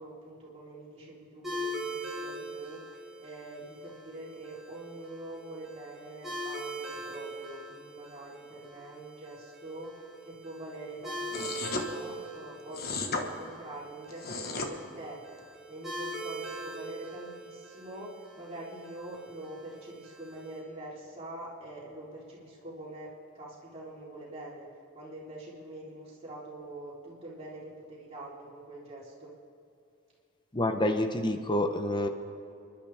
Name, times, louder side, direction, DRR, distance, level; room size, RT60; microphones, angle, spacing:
voice 1, 0.0-15.2 15.7-24.7 24.9-29.3, right 1 dB, 30° right, -6 dB, 3.6 m, -45 dB
sound 1, 1.4-20.6, right 1 dB, ahead, 4.4 m, -42 dB
sound 2, 11.3-11.9 12.7-13.2 14.1-14.7, left 3 dB, 50° left, 1.3 m, -33 dB
voice 2, 30.5-32.1, left 1 dB, 25° left, 6 dB, 0.8 m, -28 dB
29.0 x 12.0 x 3.5 m, 2.6 s
head